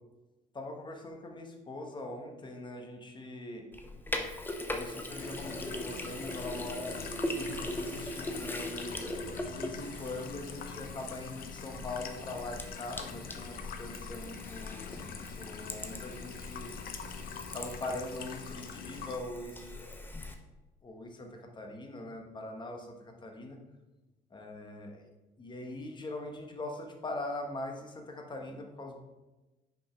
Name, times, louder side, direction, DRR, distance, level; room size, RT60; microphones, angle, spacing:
voice 1, 0.5-3.6 4.7-16.7 17.5-20.0 20.8-23.6 24.3-25.1 25.4-29.0, left 2 dB, 25° left, 2 dB, 1.3 m, -42 dB
Sink (filling or washing), 3.7-20.3, left 1 dB, 10° left, 0.8 m, -40 dB
sound 1, 5.2-19.2, left 6 dB, 60° left, 0.7 m, -45 dB
5.8 x 5.2 x 5.1 m, 1.1 s
cardioid pair, 110°, 17 cm